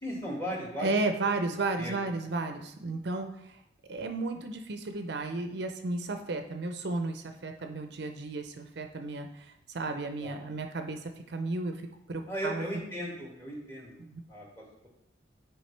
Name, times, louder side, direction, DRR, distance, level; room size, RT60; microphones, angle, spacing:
voice 1, 0.0-0.9 1.2-1.3 1.8-2.0 2.2-2.3 10.2-10.3 12.3-14.9, equal, 15° left, -4 dB, 1.9 m, -37 dB
voice 2, 0.8-3.6 3.9-11.7 12.1-12.7 14.1-14.2, right 3 dB, 60° right, 6 dB, 0.5 m, -33 dB
9.3 x 4.7 x 3.2 m, 0.81 s
head